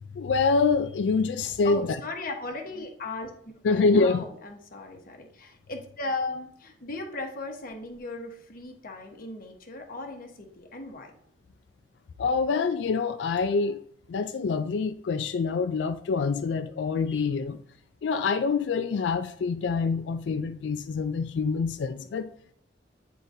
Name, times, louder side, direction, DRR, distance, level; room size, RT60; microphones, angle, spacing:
voice 1, 0.1-1.8 3.6-4.2 12.2-13.8 14.1-17.6 18.0-22.3, left 4 dB, 75° left, 9 dB, 0.3 m, -26 dB
voice 2, 1.6-11.1, left 2 dB, 50° left, 2 dB, 1.1 m, -37 dB
9.6 x 3.8 x 2.7 m, 0.66 s
head